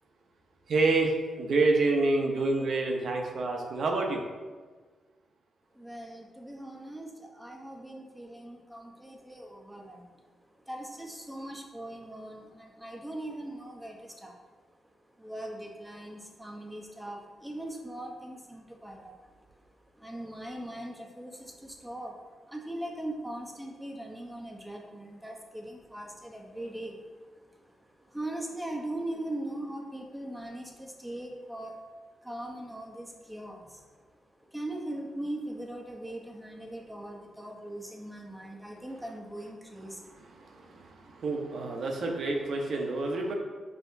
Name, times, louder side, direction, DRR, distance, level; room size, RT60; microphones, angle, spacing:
voice 1, 0.7-4.2 40.1-43.3, right 3 dB, 70° right, 1 dB, 0.8 m, -28 dB
voice 2, 5.7-10.1 10.7-14.4 15.2-19.1 19.6-19.7 20.0-22.2 22.5-27.1 27.4-31.8 32.2-33.9 34.5-40.8, right 1 dB, 5° right, 0 dB, 0.8 m, -40 dB
5.7 x 3.4 x 2.7 m, 1.4 s
cardioid pair, 80°, 0 cm